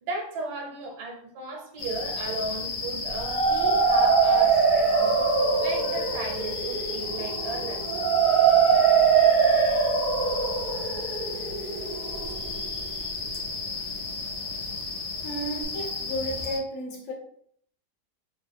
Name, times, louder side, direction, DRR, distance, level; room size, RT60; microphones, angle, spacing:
voice 1, 0.0-5.2 5.6-8.1, right 2 dB, 85° right, 1.3 m, -36 dB
sound 1, 1.8-16.6, left 3 dB, 80° left, 1.3 m, -34 dB
sound 2, 3.1-12.9, right 6 dB, 25° right, 0.5 m, -23 dB
voice 2, 15.2-17.1, equal, 55° left, 1.0 m, -33 dB
3.5 x 2.0 x 3.4 m
omnidirectional pair, 1.7 m